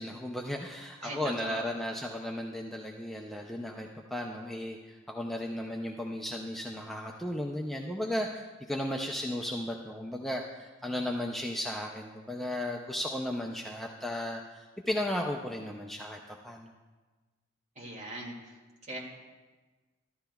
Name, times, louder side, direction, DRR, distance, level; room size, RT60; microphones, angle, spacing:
voice 1, 0.0-16.7, left 1 dB, ahead, 0 dB, 0.4 m, -35 dB
voice 2, 1.0-1.6 17.8-18.6 18.8-19.0, right 1 dB, 35° right, -3 dB, 2.1 m, -40 dB
14.0 x 11.5 x 2.3 m, 1.3 s
head